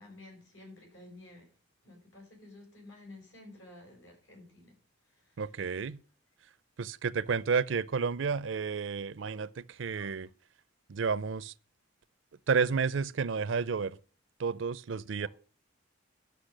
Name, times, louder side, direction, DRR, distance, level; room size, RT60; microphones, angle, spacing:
voice 1, 0.0-1.5 1.8-4.7 5.0-5.5 10.0-10.1 15.2-15.3, left 2 dB, 75° left, 5.7 m, -52 dB
voice 2, 5.4-6.0 6.8-10.3 10.9-11.5 12.5-14.0 14.4-15.3, right 5 dB, 70° right, 0.5 m, -31 dB
11.5 x 6.7 x 6.5 m
head